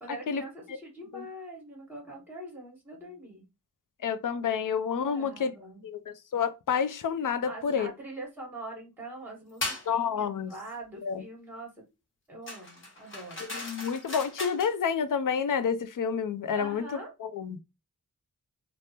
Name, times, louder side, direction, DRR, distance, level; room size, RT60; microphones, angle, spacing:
voice 1, 0.0-3.5 5.0-5.8 7.4-11.7 12.3-13.5 16.5-17.1, right 2 dB, 5° right, 1.1 m, -43 dB
voice 2, 4.0-5.5 5.8-7.9 9.9-10.5 11.0-11.2 13.5-16.8 17.2-17.6, left 7 dB, 65° left, 0.5 m, -29 dB
sound 1, 9.6-9.9 12.5-14.7, left 2 dB, 35° left, 1.1 m, -37 dB
3.4 x 2.0 x 2.7 m
wide cardioid pair, 115°, 35 cm